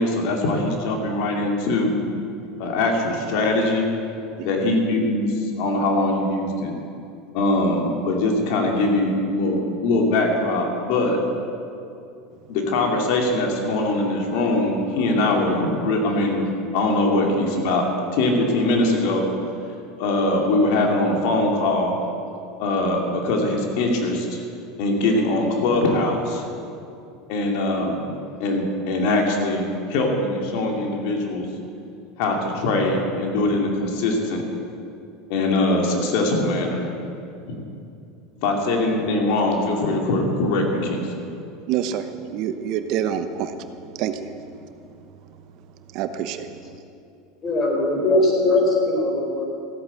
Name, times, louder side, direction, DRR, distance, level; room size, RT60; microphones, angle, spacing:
voice 1, 0.0-2.0 2.6-3.9 4.4-6.7 7.3-11.2 12.5-16.4 16.7-17.8 18.1-19.3 20.0-22.0 22.6-24.4 24.8-26.4 27.3-28.1 28.4-31.5 32.2-34.4 35.3-36.9 38.4-41.2, left 2 dB, 70° left, 1 dB, 2.5 m, -22 dB
voice 2, 41.7-43.5 44.0-44.3 45.9-46.5, right 9 dB, 55° right, 9 dB, 1.0 m, -26 dB
voice 3, 47.4-49.4, left 2 dB, 30° left, 0 dB, 4.5 m, -20 dB
15.5 x 8.9 x 8.3 m, 2.6 s
supercardioid pair, 120°, 0 cm